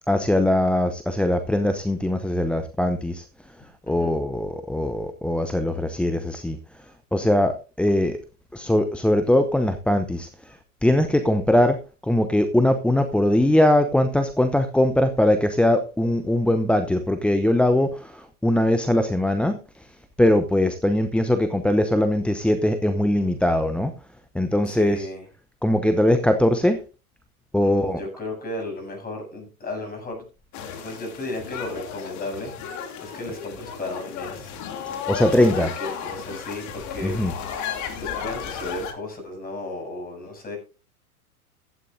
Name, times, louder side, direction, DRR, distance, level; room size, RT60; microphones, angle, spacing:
voice 1, 0.1-3.2 3.9-6.8 7.1-8.2 8.5-19.9 20.2-23.9 24.3-25.1 25.6-26.8 27.5-28.0 34.9-35.7 37.0-37.3, left 1 dB, ahead, 7 dB, 0.7 m, -21 dB
voice 2, 24.7-25.2 27.6-30.2 30.8-34.5 35.4-37.4 38.0-40.6, left 2 dB, 20° left, 3 dB, 7.7 m, -34 dB
sound 1, 30.5-38.9, left 7 dB, 40° left, 2.7 m, -34 dB
15.5 x 12.0 x 2.7 m, 0.33 s
hypercardioid pair, 100°, 45 cm